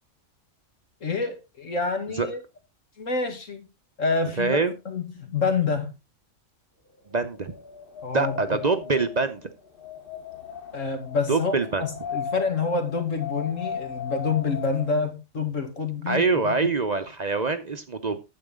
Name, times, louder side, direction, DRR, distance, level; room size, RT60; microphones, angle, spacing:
voice 1, 1.0-2.4 3.0-3.7 4.0-4.6 4.9-5.9 8.0-8.4 10.7-16.5, left 4 dB, 85° left, 2.4 m, -27 dB
voice 2, 4.4-4.7 7.1-7.5 8.1-9.5 11.3-11.8 16.1-18.2, right 4 dB, 40° right, 0.7 m, -24 dB
Wind, 7.3-15.1, left 7 dB, 45° left, 1.4 m, -37 dB
9.5 x 7.7 x 3.6 m
omnidirectional pair, 1.3 m